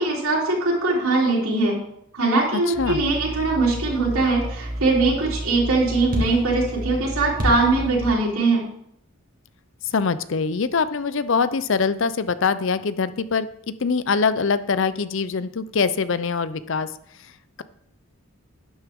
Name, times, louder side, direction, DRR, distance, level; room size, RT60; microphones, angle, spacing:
voice 1, 0.0-1.8 2.1-8.6, right 3 dB, 75° right, -3 dB, 3.3 m, -21 dB
sound 1, 2.7-8.1, equal, 40° right, 1.7 m, -30 dB
voice 2, 9.9-13.5 13.8-16.9, left 5 dB, 55° left, 14 dB, 0.5 m, -23 dB
12.0 x 9.1 x 3.6 m, 0.73 s
head